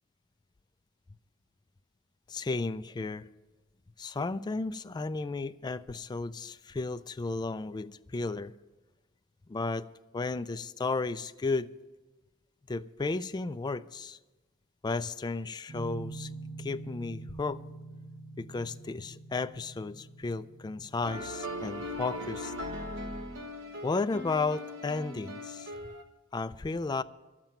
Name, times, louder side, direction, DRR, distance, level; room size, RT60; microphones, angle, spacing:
voice 1, 2.3-3.3 4.0-8.5 9.5-9.9 10.1-11.7 12.7-14.2 14.8-16.3 16.6-17.6 18.4-22.5 23.8-25.7 26.3-27.0, left 3 dB, 20° left, 0.3 m, -33 dB
sound 1, 15.7-21.3, right 3 dB, 45° right, 1.5 m, -45 dB
sound 2, 21.0-26.0, left 1 dB, 65° right, 1.1 m, -39 dB
12.5 x 7.4 x 8.9 m
head